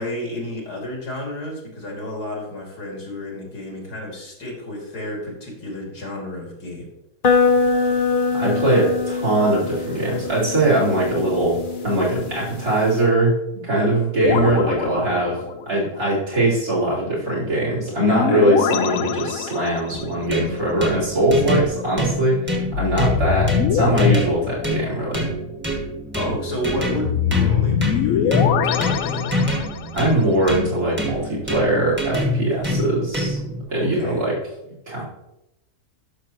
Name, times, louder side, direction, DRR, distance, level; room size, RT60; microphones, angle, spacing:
voice 1, 0.0-6.9 18.1-18.5 26.1-29.4 33.8-34.3, left 1 dB, 85° left, -1 dB, 3.0 m, -31 dB
sound 1, 7.2-13.0, left 4 dB, 45° left, 0.7 m, -23 dB
voice 2, 8.3-11.6 11.8-15.4 15.7-25.2 29.9-33.4 33.7-34.3 34.9-35.1, right 1 dB, 70° right, -6 dB, 4.2 m, -21 dB
sound 2, 14.2-15.8 18.0-20.0 22.7-25.2 27.0-30.0, left 9 dB, 70° left, 0.9 m, -23 dB
sound 3, 19.9-33.6, left 1 dB, 10° right, 1.2 m, -26 dB
12.0 x 6.4 x 3.0 m, 0.88 s
omnidirectional pair, 1.7 m